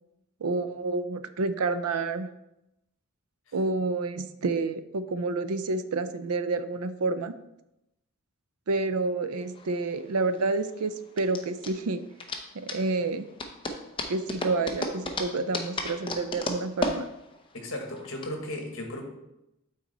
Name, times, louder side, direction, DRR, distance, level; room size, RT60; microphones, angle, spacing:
voice 1, 0.4-2.3 3.5-7.4 8.7-12.0 12.5-13.3 14.1-17.1, right 3 dB, 85° right, 12 dB, 0.5 m, -29 dB
sound 1, 9.4-18.3, left 2 dB, 25° left, 0.6 m, -35 dB
voice 2, 17.5-19.0, left 1 dB, 65° left, 3 dB, 1.4 m, -36 dB
8.8 x 4.1 x 4.1 m, 0.89 s
head